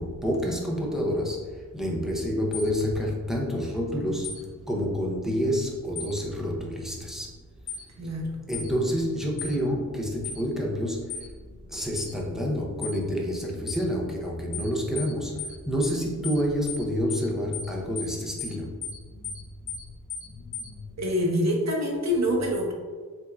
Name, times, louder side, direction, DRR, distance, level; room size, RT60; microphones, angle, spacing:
voice 1, 0.0-1.4 1.7-4.3 4.7-7.3 8.5-11.0 11.7-15.3 15.7-18.7, equal, ahead, -2 dB, 0.6 m, -28 dB
sound 1, 2.5-2.7 4.2-4.4 6.0-6.1 7.7-7.8 8.5-8.7 9.4-9.6 10.2-10.4 11.1-11.3 12.0-12.1 12.8-13.0 13.7-13.8 14.5-14.7 15.0-15.1 15.4-15.6 15.8-16.0 16.2-16.4 16.7-16.8 17.1-17.3 17.5-17.7 18.0-18.1 18.4-18.6 18.8-19.0 19.2-19.4 19.7-19.8 20.1-20.3 20.5-20.7, left 9 dB, 55° left, 0.8 m, -35 dB
voice 2, 8.0-8.4 21.0-22.7, equal, 50° right, 0 dB, 0.9 m, -25 dB
7.2 x 2.6 x 2.3 m, 1.5 s
wide cardioid pair, 150°, 34 cm